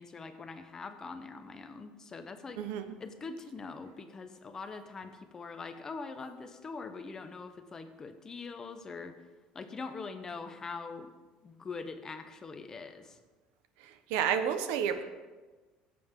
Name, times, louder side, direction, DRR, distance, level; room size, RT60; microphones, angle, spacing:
voice 1, 0.0-2.6 3.0-9.1 9.5-11.1 11.4-13.2, left 4 dB, 20° left, 8 dB, 0.8 m, -43 dB
voice 2, 2.6-3.0 13.8-15.0, right 8 dB, 85° right, 9 dB, 0.9 m, -31 dB
16.0 x 7.7 x 3.7 m, 1.3 s
cardioid pair, 150°, 3 cm